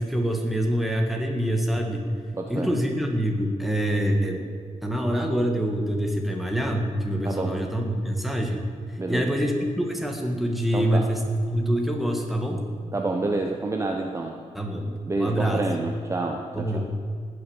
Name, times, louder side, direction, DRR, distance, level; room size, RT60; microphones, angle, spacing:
voice 1, 0.0-2.1 2.5-4.4 4.8-8.6 9.1-12.6 14.5-15.6 16.5-16.8, equal, ahead, 2 dB, 1.8 m, -25 dB
voice 2, 2.3-2.8 7.2-7.5 9.0-9.3 10.7-11.1 12.9-14.4 15.1-16.8, right 2 dB, 20° right, 2 dB, 0.9 m, -28 dB
19.0 x 6.8 x 7.2 m, 2.1 s
wide cardioid pair, 150°, 13 cm